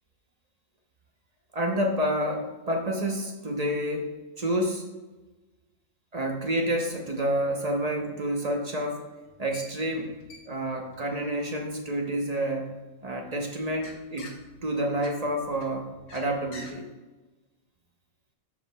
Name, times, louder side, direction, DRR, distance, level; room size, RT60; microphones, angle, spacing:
voice 1, 1.5-4.9 6.1-9.0 9.4-10.1 10.5-12.7 13.0-14.3 14.6-16.9, right 1 dB, 35° right, 2 dB, 0.8 m, -29 dB
sound 1, 9.2-12.7 13.1-16.7, left 2 dB, 85° left, 1.5 m, -49 dB
12.5 x 4.7 x 2.2 m, 1.2 s
omnidirectional pair, 1.3 m